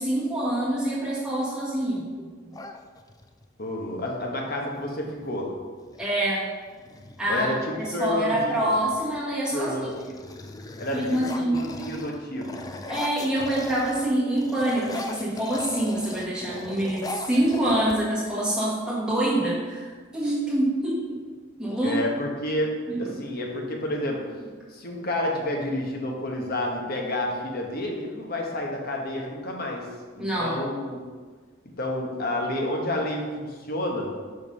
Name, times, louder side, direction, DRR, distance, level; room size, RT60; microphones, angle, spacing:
voice 1, 0.0-2.1 6.0-6.5 7.2-7.5 7.8-9.9 10.9-11.7 12.9-21.2 21.6-22.0 22.9-23.2 30.2-30.6, right 1 dB, 5° right, -8 dB, 1.6 m, -26 dB
sound 1, 2.5-3.5 5.1-5.3 5.6-6.1 6.7-8.2 8.8-9.2 9.6-14.1 14.4-18.3, left 2 dB, 20° left, 0.4 m, -39 dB
voice 2, 3.6-5.5 7.3-8.7 9.5-10.2 10.8-12.6 21.8-22.7 23.0-24.2 24.7-29.9 30.2-31.0 31.8-34.1, left 1 dB, 50° left, 0 dB, 1.2 m, -30 dB
5.3 x 4.6 x 5.4 m, 1.5 s
head